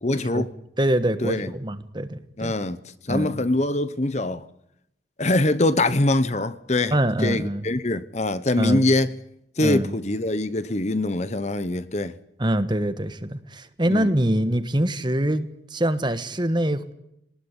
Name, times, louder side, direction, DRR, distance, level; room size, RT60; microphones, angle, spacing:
voice 1, 0.0-0.5 1.2-1.5 2.4-2.8 3.0-4.5 5.2-6.9 7.2-9.1 9.6-12.1 13.9-14.1, left 2 dB, 35° left, 0.9 m, -23 dB
voice 2, 0.8-2.5 3.1-3.4 6.9-7.6 8.6-8.9 9.6-9.9 12.4-16.9, right 1 dB, 25° right, 1.4 m, -24 dB
25.5 x 19.5 x 9.9 m
head